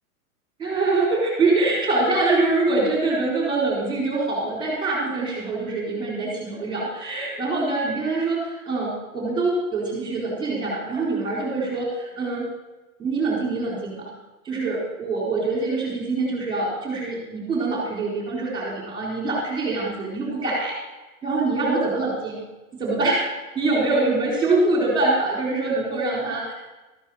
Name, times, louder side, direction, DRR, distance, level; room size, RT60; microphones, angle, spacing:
voice 1, 0.6-12.4 13.0-14.1 14.4-20.8 21.2-22.4 22.8-23.2 23.5-26.5, right 3 dB, 10° right, -3 dB, 4.1 m, -24 dB
14.0 x 9.8 x 5.0 m, 1.1 s
hypercardioid pair, 140°, 43 cm